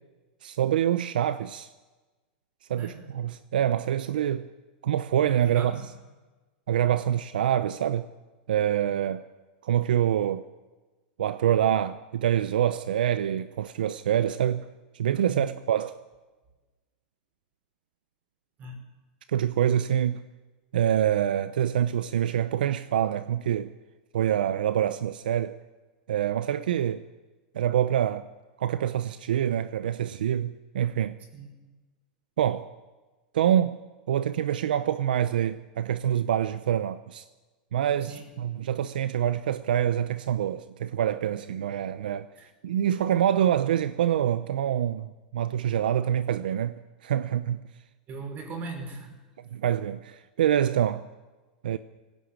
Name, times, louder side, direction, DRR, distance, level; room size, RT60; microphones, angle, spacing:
voice 1, 0.4-1.7 2.7-4.5 4.8-5.8 6.7-8.1 8.5-9.2 9.6-10.4 11.2-14.7 14.9-16.0 19.3-20.2 20.7-23.7 24.1-25.6 26.1-27.0 27.5-28.2 28.6-31.2 32.4-32.7 33.3-33.8 34.1-37.2 37.7-42.3 42.6-45.1 45.3-47.6 49.5-51.1 51.6-51.8, right 10 dB, 80° right, 0.8 m, -26 dB
voice 2, 2.8-3.1 5.2-5.9 15.3-15.5 18.6-18.8 31.3-31.5 38.0-38.2 38.5-38.6 42.4-42.5 42.9-43.0 48.1-49.2, right 3 dB, 35° right, 5.7 m, -39 dB
18.5 x 16.5 x 8.6 m
hypercardioid pair, 120°, 5 cm